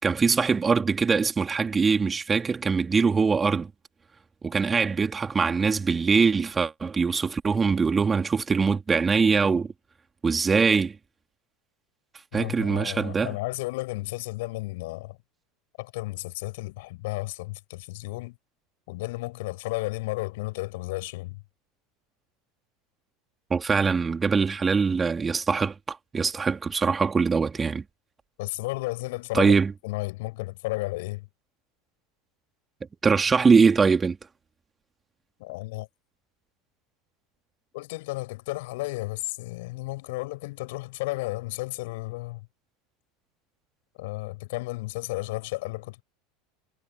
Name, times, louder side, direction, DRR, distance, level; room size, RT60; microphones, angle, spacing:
voice 1, 0.0-3.7 4.4-9.7 10.2-11.0 12.3-13.4 23.5-27.8 29.3-29.7 33.0-34.2, right 5 dB, 20° right, 3.6 m, -22 dB
voice 2, 12.3-15.2 15.8-18.4 18.9-21.4 28.4-29.5 29.8-31.3 35.4-35.9 37.7-42.5 44.0-46.0, left 21 dB, 60° left, 6.4 m, -33 dB
figure-of-eight pair, 75°, 0 cm